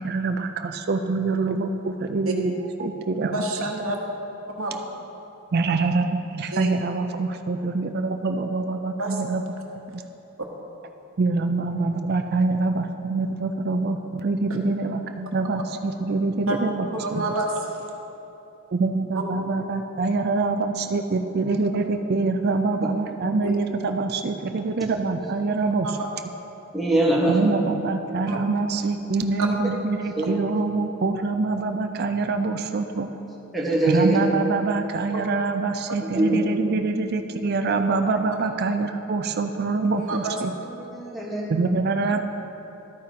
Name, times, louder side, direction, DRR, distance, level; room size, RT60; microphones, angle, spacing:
voice 1, 0.0-2.5 2.8-3.4 5.5-9.4 9.9-10.0 11.2-17.2 18.7-25.9 27.3-33.1 33.9-40.5 41.5-42.2, right 3 dB, 50° right, 6 dB, 0.4 m, -25 dB
voice 2, 3.3-4.0 4.6-4.8 6.5-6.7 9.0-9.2 16.5-16.6 16.9-17.8 25.8-26.1 28.3-28.4 29.4-29.5 40.0-40.4, right 2 dB, 70° right, 1 dB, 1.1 m, -28 dB
voice 3, 26.7-27.4 30.2-30.3 33.5-34.2 36.1-36.4 37.7-37.8 40.8-41.4, right 2 dB, ahead, -5 dB, 1.3 m, -22 dB
12.0 x 9.2 x 2.9 m, 2.9 s
head